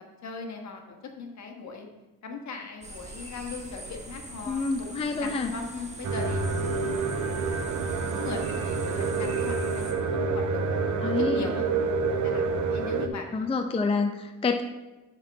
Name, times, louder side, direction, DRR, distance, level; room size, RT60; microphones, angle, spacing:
voice 1, 0.2-1.9 2.2-6.4 6.8-7.0 8.1-13.3, left 4 dB, 55° left, 3 dB, 1.4 m, -39 dB
sound 1, 2.8-9.9, right 1 dB, 20° right, 1.2 m, -43 dB
voice 2, 4.5-5.5 11.0-11.4 13.3-14.6, left 4 dB, 20° left, 5 dB, 0.4 m, -27 dB
sound 2, 6.0-13.1, right 4 dB, 60° right, 0.8 m, -28 dB
8.1 x 4.5 x 5.2 m, 1.1 s
cardioid pair, 110°, 33 cm